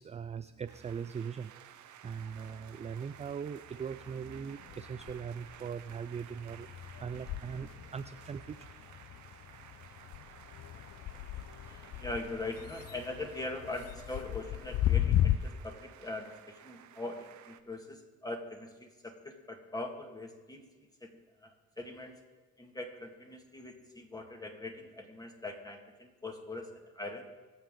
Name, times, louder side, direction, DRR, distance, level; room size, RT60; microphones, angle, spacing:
voice 1, 0.0-6.7 7.0-8.7, right 7 dB, 25° right, 11 dB, 0.3 m, -40 dB
sound 1, 0.6-17.6, right 10 dB, 75° right, 0.8 m, -55 dB
sound 2, 2.1-3.3 3.7-15.4, left 12 dB, 55° left, 0.5 m, -36 dB
voice 2, 11.7-20.7 21.0-21.1 21.4-21.5 21.8-22.2 22.6-26.7 27.0-27.3, left 2 dB, 10° left, 3 dB, 1.8 m, -42 dB
21.5 x 7.2 x 3.8 m, 1.3 s
cardioid pair, 90°, 30 cm